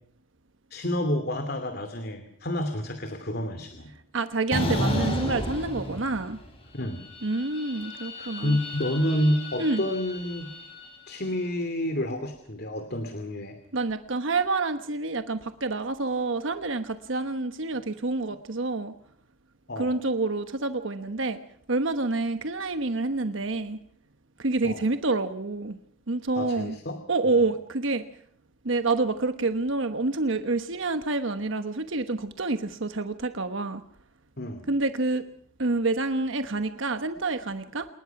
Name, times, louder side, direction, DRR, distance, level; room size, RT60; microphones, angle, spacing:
voice 1, 0.7-3.9 6.7-7.0 8.2-10.5 11.1-13.6 19.7-20.0 24.6-24.8 26.4-27.0 27.2-27.4 34.4-34.7, left 1 dB, 50° left, 8 dB, 2.6 m, -29 dB
voice 2, 4.1-6.4 7.2-8.6 9.6-9.8 13.7-18.9 19.8-21.4 21.7-23.8 24.4-25.8 26.1-26.8 27.1-28.0 28.6-33.8 34.7-35.2 35.6-37.9, right 3 dB, 65° right, 9 dB, 1.2 m, -28 dB
sound 1, 4.5-6.5 6.8-11.1, equal, 30° left, 6.2 m, -32 dB
28.5 x 19.5 x 6.0 m, 0.64 s
head